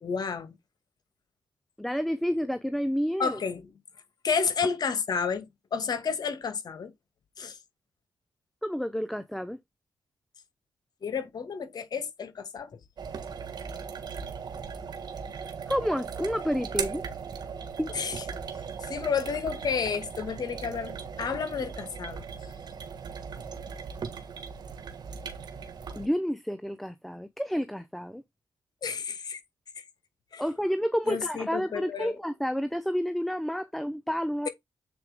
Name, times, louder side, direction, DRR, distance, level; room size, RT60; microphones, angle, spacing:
voice 1, 0.0-0.6 3.2-3.6 4.2-6.9 7.4-7.6 11.0-12.7 17.9-18.2 18.8-22.3 28.8-29.4 29.8-29.9 30.3-30.4 31.1-32.2, left 6 dB, 60° left, 2.1 m, -31 dB
voice 2, 1.8-3.4 8.6-9.6 15.7-17.0 17.8-17.9 26.0-28.2 30.4-34.5, equal, ahead, 0.7 m, -30 dB
sound 1, 13.0-26.1, right 6 dB, 65° right, 1.5 m, -38 dB
7.7 x 4.5 x 3.5 m
cardioid pair, 75°, 8 cm